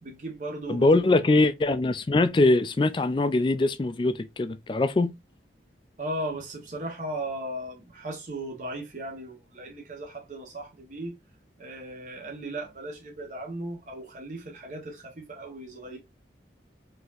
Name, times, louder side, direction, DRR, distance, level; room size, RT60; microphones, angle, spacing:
voice 1, 0.0-0.9 6.0-11.1 11.6-16.0, right 1 dB, 45° right, 0.9 m, -36 dB
voice 2, 0.7-5.1, left 2 dB, 30° left, 0.3 m, -22 dB
4.0 x 2.8 x 2.4 m
head